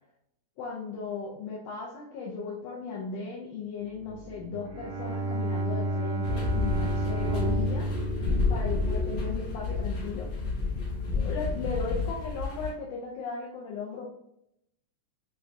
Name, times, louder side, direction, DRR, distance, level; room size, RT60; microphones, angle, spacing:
voice 1, 0.6-7.9 8.5-10.3 11.1-14.1, left 4 dB, 85° left, -3 dB, 2.1 m, -36 dB
sound 1, 3.8-12.1, right 3 dB, 90° right, 1.4 m, -44 dB
Bowed string instrument, 4.4-9.6, right 1 dB, 75° right, 1.7 m, -32 dB
sound 2, 6.2-12.7, left 4 dB, 60° left, 2.0 m, -30 dB
6.6 x 2.7 x 2.3 m, 0.77 s
omnidirectional pair, 3.6 m